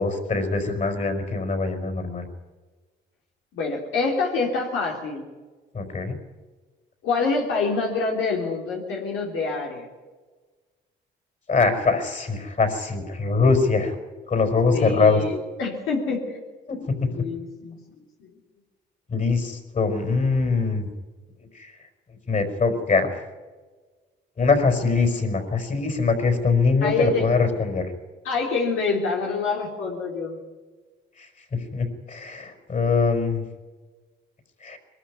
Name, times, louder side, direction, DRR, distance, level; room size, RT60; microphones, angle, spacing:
voice 1, 0.0-2.3 5.7-6.2 11.5-14.0 14.3-15.2 16.7-17.3 19.1-20.9 21.5-21.7 22.3-23.1 24.4-27.8 31.2-31.3 31.7-33.4 34.6-34.8, left 4 dB, 40° left, 6 dB, 4.9 m, -23 dB
voice 2, 3.5-5.2 7.0-9.9 14.7-16.4 17.1-17.8 26.8-27.3 28.2-30.4, left 4 dB, 85° left, -1 dB, 3.5 m, -26 dB
22.0 x 13.0 x 9.7 m, 1.3 s
cardioid pair, 90°, 20 cm